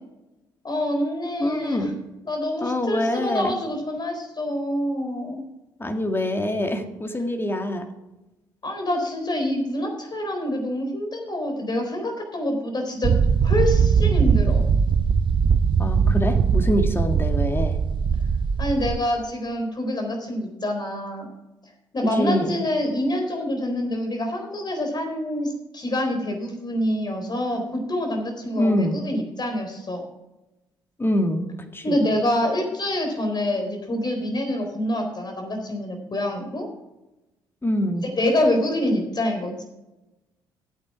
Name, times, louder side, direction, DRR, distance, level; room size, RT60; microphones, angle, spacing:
voice 1, 0.6-1.9 2.3-5.4 8.6-13.2 13.4-14.6 18.6-21.3 21.9-30.0 31.8-36.7 38.0-39.6, left 1 dB, 35° left, 3 dB, 4.0 m, -26 dB
voice 2, 1.4-1.9 2.6-3.6 5.8-7.9 15.8-17.8 22.2-22.6 28.6-28.9 31.0-31.4 31.7-32.0 37.6-38.0, left 1 dB, 20° left, 5 dB, 1.9 m, -24 dB
sound 1, 13.0-19.0, right 6 dB, 40° right, 0.7 m, -20 dB
13.5 x 8.6 x 4.8 m, 0.99 s
figure-of-eight pair, 45°, 12 cm